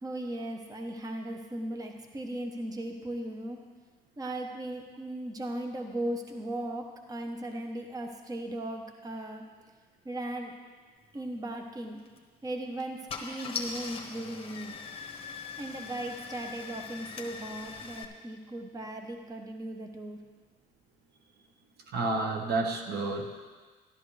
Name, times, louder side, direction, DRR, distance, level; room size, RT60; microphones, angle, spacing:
voice 1, 0.0-3.6 4.2-9.4 10.0-10.5 11.1-12.0 12.4-14.7 15.6-20.2, right 1 dB, 20° right, 4 dB, 1.0 m, -37 dB
Car / Engine starting, 12.0-12.2 12.8-12.9 13.1-18.0, left 5 dB, 35° left, 1.2 m, -41 dB
voice 2, 21.9-23.5, right 3 dB, 70° right, 3 dB, 1.4 m, -30 dB
13.0 x 12.0 x 3.3 m, 1.4 s
cardioid pair, 110°, 17 cm